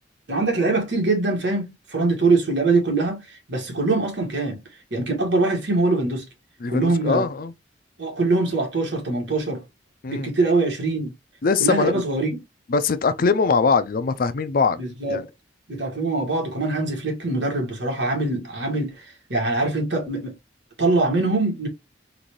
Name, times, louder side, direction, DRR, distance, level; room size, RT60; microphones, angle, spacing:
voice 1, 0.3-4.6 4.9-6.3 6.7-7.2 8.0-9.6 10.1-11.1 11.6-12.4 14.8-15.3 15.7-20.4 20.8-21.7, right 3 dB, 85° right, 1.7 m, -23 dB
voice 2, 6.6-7.5 10.0-10.3 11.4-12.0 12.7-14.8 15.1-15.2, left 4 dB, 55° left, 0.5 m, -22 dB
3.9 x 2.6 x 3.0 m
head